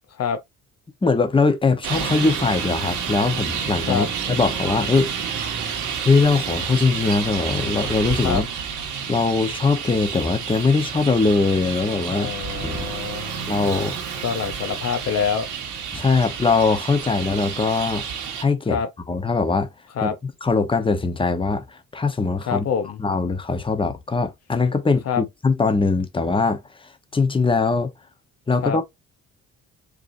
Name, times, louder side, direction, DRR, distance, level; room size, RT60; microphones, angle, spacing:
voice 1, 1.0-5.1 6.0-8.5 9.1-12.3 12.6-12.8 13.5-14.0 15.9-18.0 18.4-18.8 19.1-19.7 20.0-22.7 23.0-26.6 27.1-27.9 28.5-28.9, left 4 dB, 15° left, 0.9 m, -21 dB
Traffic noise roadway noise, 1.8-18.4, right 7 dB, 85° right, 1.5 m, -30 dB
voice 2, 12.1-13.3 14.2-15.5 18.7-18.9 20.0-20.2 22.4-23.0 25.1-25.2 28.6-28.8, left 7 dB, 55° left, 0.7 m, -25 dB
4.8 x 3.1 x 2.6 m
cardioid pair, 90°, 30 cm